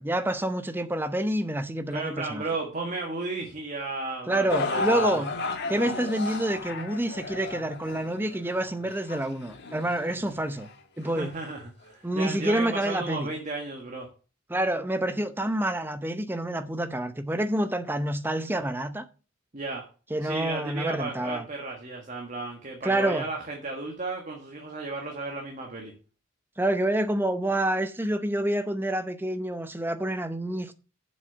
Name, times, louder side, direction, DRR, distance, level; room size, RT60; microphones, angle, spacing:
voice 1, 0.0-2.4 4.3-5.3 5.7-10.7 11.0-11.3 12.0-13.3 14.5-19.1 20.1-21.4 22.8-23.3 26.6-30.7, right 1 dB, 10° right, 0.7 m, -28 dB
voice 2, 1.9-5.2 11.0-14.1 19.5-19.9 20.2-25.9, right 3 dB, 35° right, 1.6 m, -34 dB
sound 1, 4.5-10.7 11.4-11.5 12.3-12.4, left 3 dB, 55° left, 1.6 m, -33 dB
7.6 x 6.3 x 6.8 m
head